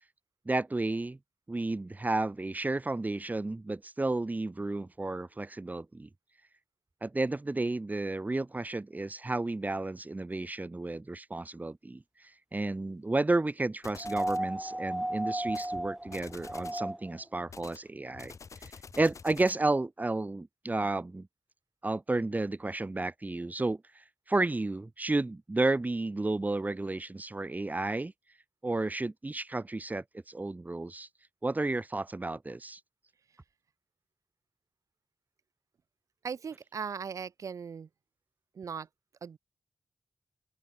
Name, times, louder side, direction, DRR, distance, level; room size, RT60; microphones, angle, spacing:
voice 1, 0.5-1.2 1.5-6.1 7.0-12.0 12.5-18.3 19.0-21.3 21.8-28.1 28.6-31.1 31.4-32.8, right 2 dB, 30° right, 1.8 m, -32 dB
sound 1, 13.8-14.5 15.4-15.7 16.1-16.9 17.5-19.7, left 5 dB, 65° left, 2.5 m, -49 dB
sound 2, 14.0-17.2 18.6-18.7, right 1 dB, 10° right, 1.0 m, -34 dB
voice 2, 36.2-37.9 38.5-38.9 39.2-39.4, right 6 dB, 75° right, 1.7 m, -38 dB
open air
cardioid pair, 45°, 6 cm